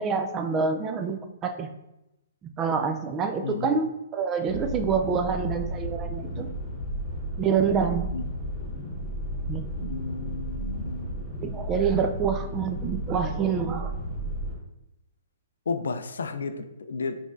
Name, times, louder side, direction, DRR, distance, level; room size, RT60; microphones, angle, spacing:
voice 1, 0.0-1.7 2.6-6.5 7.4-8.1 9.5-9.9 11.4-13.9, right 6 dB, 25° right, 6 dB, 0.5 m, -27 dB
voice 2, 3.4-3.8 8.1-8.2 9.7-11.2 15.7-17.2, left 4 dB, 75° left, 9 dB, 0.4 m, -33 dB
sound 1, 4.5-14.6, right 1 dB, 15° left, 1.5 m, -33 dB
5.1 x 3.2 x 2.6 m, 0.90 s
hypercardioid pair, 125°, 0 cm